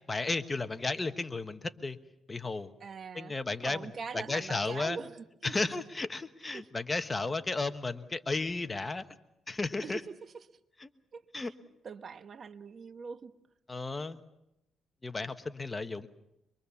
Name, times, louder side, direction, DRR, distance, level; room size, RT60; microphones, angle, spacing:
voice 1, 0.1-2.0 2.3-2.7 3.1-3.9 4.1-5.0 5.4-9.0 9.5-10.0 10.8-10.9 11.3-11.5 13.7-14.2 15.0-16.1, left 3 dB, 20° left, 1.3 m, -33 dB
voice 2, 2.8-5.6 6.5-6.7 9.8-10.5 11.1-11.5 11.8-13.3, right 5 dB, 50° right, 1.1 m, -43 dB
25.0 x 23.0 x 7.1 m
cardioid pair, 90°, 0 cm